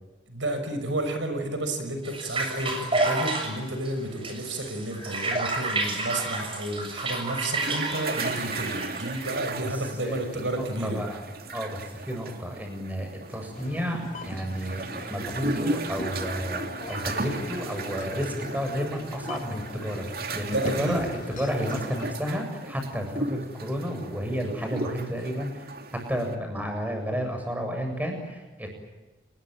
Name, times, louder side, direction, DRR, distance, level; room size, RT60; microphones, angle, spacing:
voice 1, 0.3-11.0 20.5-21.1, right 1 dB, 75° right, 7 dB, 5.9 m, -31 dB
sound 1, 2.0-9.4, right 2 dB, 30° right, 6.7 m, -30 dB
sound 2, 7.5-26.4, right 2 dB, 50° right, 2.8 m, -36 dB
voice 2, 9.6-11.2 11.5-28.7, equal, 10° right, 3 dB, 7.4 m, -32 dB
sound 3, 13.5-22.1, left 1 dB, 40° left, 2.1 m, -40 dB
29.5 x 21.5 x 9.1 m, 1.2 s
head